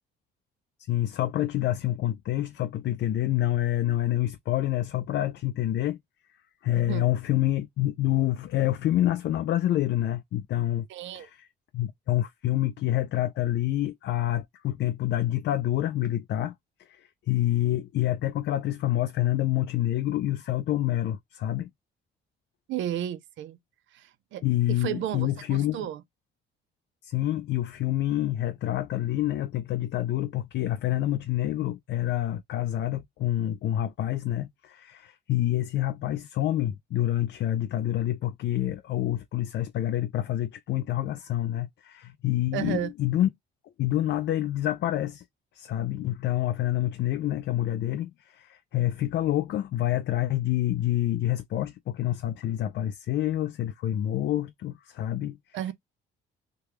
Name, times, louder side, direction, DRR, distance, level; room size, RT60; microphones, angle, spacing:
voice 1, 0.9-6.0 6.6-10.9 11.1-11.3 11.7-16.5 16.9-21.7 24.4-25.9 27.0-43.3 43.8-45.2 45.5-55.4, left 13 dB, 65° left, 0.4 m, -27 dB
voice 2, 6.7-7.1 10.9-11.3 22.7-23.6 23.9-24.4 24.7-26.0 42.5-42.9 55.5-55.7, right 11 dB, 75° right, 0.5 m, -33 dB
3.3 x 2.3 x 3.0 m
cardioid pair, 90°, 20 cm